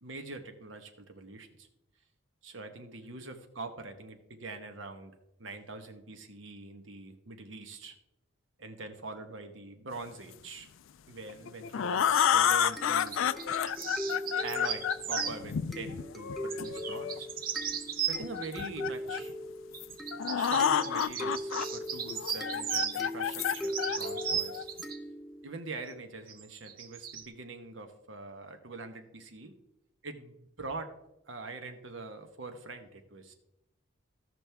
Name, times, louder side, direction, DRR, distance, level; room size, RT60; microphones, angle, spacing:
voice 1, 0.0-1.7 2.4-8.0 8.6-10.7 11.1-13.2 14.4-17.3 18.0-19.3 20.4-24.7 25.4-29.5 30.0-30.9 31.3-33.3, right 3 dB, 65° right, 7 dB, 1.2 m, -43 dB
sound 1, 11.3-17.2 18.1-19.3 19.8-19.9 20.1-21.6 22.1-24.8, left 8 dB, 70° left, 0.4 m, -30 dB
sound 2, 12.7-15.4 16.5-18.5 19.7-23.0 23.4-25.0 25.9-26.0 26.3-27.3, right 8 dB, 45° right, 0.7 m, -36 dB
sound 3, 12.8-25.5, equal, ahead, 0.8 m, -41 dB
16.0 x 6.1 x 3.4 m, 0.88 s
head